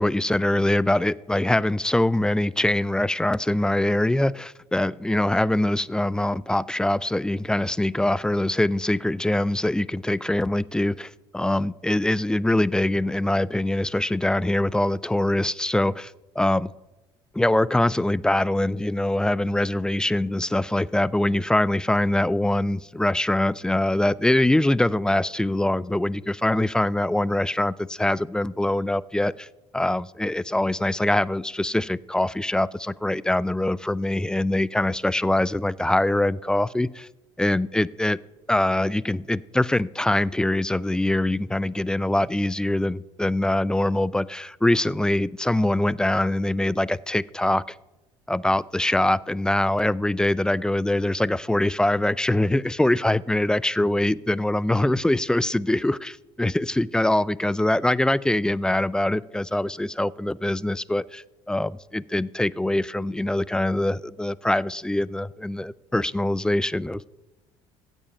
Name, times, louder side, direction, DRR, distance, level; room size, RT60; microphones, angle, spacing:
voice 1, 0.0-16.7 17.3-29.5 29.7-37.1 37.4-38.2 38.5-47.8 48.3-67.1, left 1 dB, 5° left, 0.3 m, -23 dB
16.0 x 5.4 x 5.5 m
hypercardioid pair, 60°, 14 cm